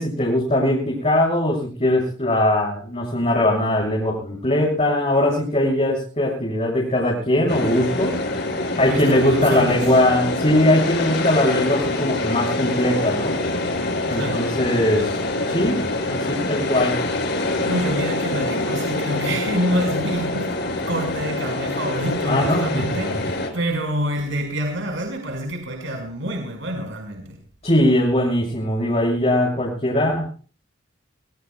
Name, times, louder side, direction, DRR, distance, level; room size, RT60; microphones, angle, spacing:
voice 1, 0.0-8.2 8.8-13.3 14.1-15.2 15.5-15.8 16.1-17.0 22.3-22.8 27.6-30.3, left 1 dB, 35° left, 6.8 m, -20 dB
sound 1, 7.5-23.5, left 2 dB, 60° left, 6.0 m, -25 dB
voice 2, 8.9-9.8 14.1-14.5 17.7-20.5 20.9-27.4, equal, 70° right, 5.1 m, -27 dB
25.0 x 24.0 x 2.3 m
head